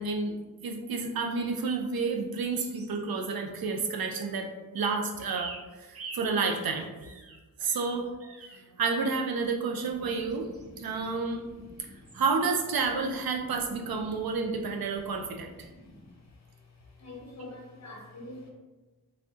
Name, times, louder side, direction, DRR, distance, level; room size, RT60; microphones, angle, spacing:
voice 1, 0.0-6.9 7.6-10.5 10.8-11.4 11.8-11.9 12.1-15.7, right 4 dB, 75° right, 4 dB, 0.6 m, -30 dB
sound 1, 2.5-3.1 5.2-8.6 8.9-9.3 10.1-11.3 12.0-12.3 12.6-12.8, right 3 dB, 40° right, 0.7 m, -47 dB
voice 2, 17.0-18.5, left 2 dB, 50° left, 0 dB, 0.9 m, -45 dB
3.2 x 2.6 x 3.6 m, 1.2 s
wide cardioid pair, 70°, 36 cm